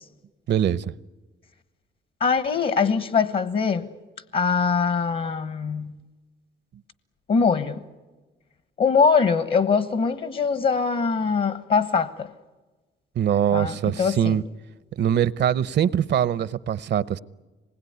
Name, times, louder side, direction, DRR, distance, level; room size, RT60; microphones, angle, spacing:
voice 1, 0.5-0.9 13.2-14.4 15.0-17.2, right 9 dB, 60° right, 0.8 m, -22 dB
voice 2, 2.2-3.9 4.3-5.9 7.3-7.8 8.8-12.3 13.5-14.4, left 5 dB, 50° left, 1.3 m, -22 dB
26.0 x 20.5 x 9.5 m
cardioid pair, 90°, 20 cm